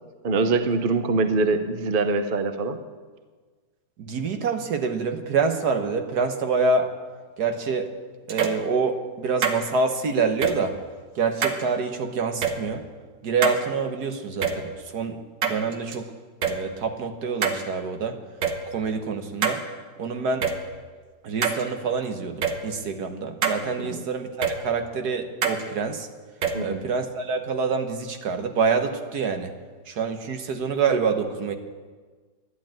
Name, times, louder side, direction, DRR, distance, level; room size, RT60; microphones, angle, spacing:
voice 1, 0.2-2.8 23.8-24.0 26.5-26.8, right 3 dB, 45° right, 8 dB, 0.7 m, -24 dB
voice 2, 4.0-6.9 7.4-7.9 8.3-10.8 11.1-12.9 13.2-16.1 16.5-18.2 18.7-19.6 20.0-20.5 21.2-26.1 26.6-29.5 29.9-31.5, right 4 dB, 65° right, 6 dB, 1.6 m, -26 dB
sound 1, 8.3-8.6 9.4-9.6 10.4-10.5 11.4-11.6 12.4-12.5 13.4-13.6 14.4-14.5 15.4-16.0 16.4-16.5 17.4-17.6 18.4-18.5 19.4-19.6 20.4-20.5 21.4-21.6 22.4-22.5 23.4-23.6 24.4-24.5 25.4-25.6 26.4-26.5, right 7 dB, 80° right, 1.8 m, -24 dB
11.5 x 11.5 x 8.9 m, 1.4 s
omnidirectional pair, 1.9 m